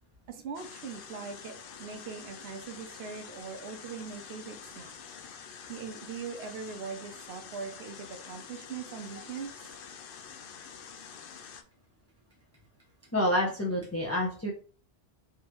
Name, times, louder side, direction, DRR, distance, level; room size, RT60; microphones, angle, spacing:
voice 1, 0.3-4.9 5.7-9.5, right 6 dB, 75° right, 6 dB, 0.9 m, -41 dB
sound 1, 0.5-11.6, left 7 dB, 65° left, 0.7 m, -47 dB
voice 2, 13.1-14.5, left 1 dB, 20° left, -2 dB, 0.4 m, -28 dB
3.5 x 2.9 x 3.0 m, 0.42 s
omnidirectional pair, 1.1 m